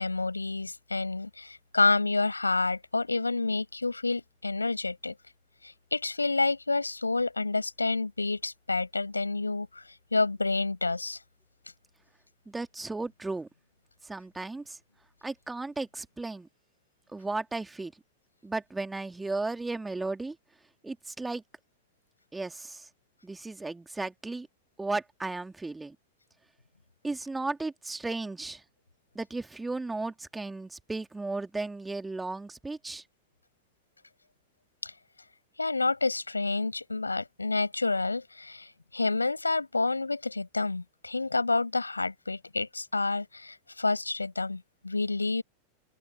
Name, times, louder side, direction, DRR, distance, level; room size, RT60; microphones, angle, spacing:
voice 1, 0.0-5.1 5.6-9.8 10.1-11.2 34.8-34.9 35.6-45.4, left 3 dB, 80° left, 7.8 m, -29 dB
voice 2, 12.5-13.5 14.0-14.8 15.2-16.5 17.1-17.9 18.4-20.4 20.8-21.4 22.3-22.9 23.2-24.5 24.8-26.0 27.0-28.6 29.1-33.0, right 3 dB, 10° right, 2.4 m, -35 dB
open air
figure-of-eight pair, 90°, 0 cm